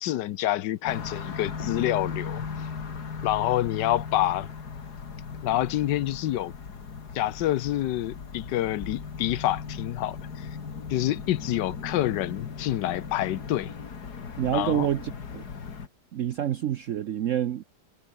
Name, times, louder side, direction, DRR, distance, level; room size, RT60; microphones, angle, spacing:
voice 1, 0.0-2.4 3.2-4.5 5.4-6.5 7.1-10.5 10.9-13.7 14.5-14.9, left 14 dB, 80° left, 1.4 m, -27 dB
sound 1, 0.9-15.9, left 5 dB, 65° left, 2.7 m, -37 dB
voice 2, 14.4-15.4 16.1-17.6, right 10 dB, 60° right, 0.9 m, -27 dB
omnidirectional pair, 1.9 m